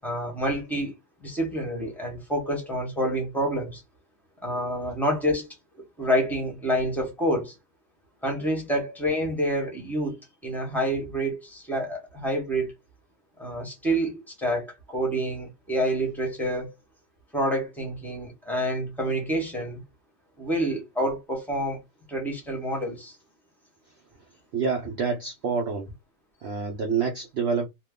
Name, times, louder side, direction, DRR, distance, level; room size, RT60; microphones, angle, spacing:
voice 1, 0.0-0.9 1.2-3.8 4.4-7.6 8.2-12.7 13.4-16.7 17.3-19.8 20.4-21.8 22.1-23.2, equal, ahead, 0.7 m, -28 dB
voice 2, 24.5-25.9 26.4-27.6, right 5 dB, 85° right, 0.5 m, -27 dB
2.9 x 2.2 x 3.5 m
omnidirectional pair, 1.8 m